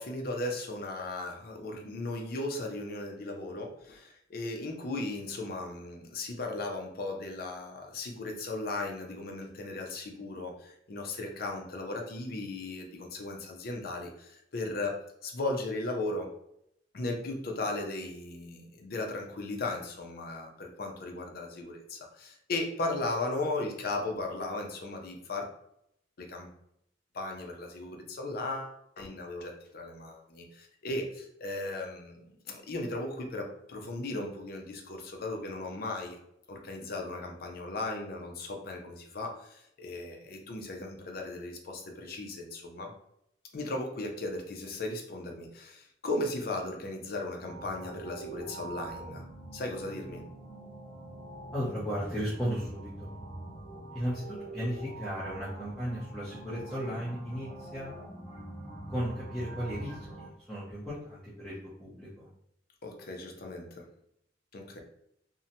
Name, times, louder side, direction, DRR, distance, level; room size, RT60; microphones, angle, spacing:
voice 1, 0.0-16.3 16.9-25.5 26.2-26.5 27.1-36.2 36.5-42.9 43.5-49.3 49.5-50.2 62.8-63.9 64.5-64.8, left 2 dB, 55° left, 2 dB, 0.5 m, -36 dB
sound 1, 47.4-60.3, right 1 dB, 30° left, 1.1 m, -44 dB
voice 2, 51.5-53.1 53.9-57.9 58.9-62.3, equal, ahead, -12 dB, 0.7 m, -35 dB
2.7 x 2.1 x 2.7 m, 0.75 s
head